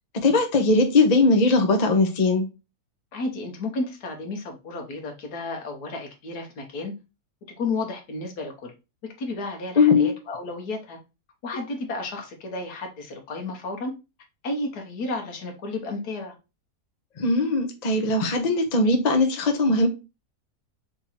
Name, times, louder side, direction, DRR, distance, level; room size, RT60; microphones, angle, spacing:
voice 1, 0.1-2.5 9.8-10.1 17.2-19.9, left 3 dB, 40° left, 0.7 m, -20 dB
voice 2, 3.1-6.9 7.6-8.7 9.2-11.0 11.4-13.9 14.4-16.3, left 2 dB, 75° left, 1.6 m, -32 dB
3.8 x 2.9 x 4.0 m
omnidirectional pair, 1.7 m